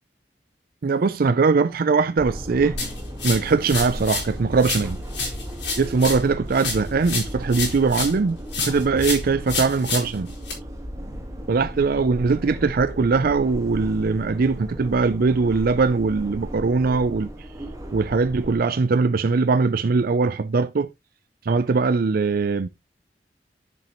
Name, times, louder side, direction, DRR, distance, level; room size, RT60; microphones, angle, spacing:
voice 1, 0.8-2.8 3.2-5.0 5.8-10.3 11.5-17.3 17.9-20.9 21.5-22.7, right 4 dB, 55° right, 0.5 m, -21 dB
sound 1, 2.2-18.6, equal, 20° right, 1.7 m, -35 dB
sound 2, 2.8-4.3 4.6-8.2 8.5-10.5, left 4 dB, 85° left, 4.1 m, -29 dB
10.5 x 5.3 x 3.0 m
head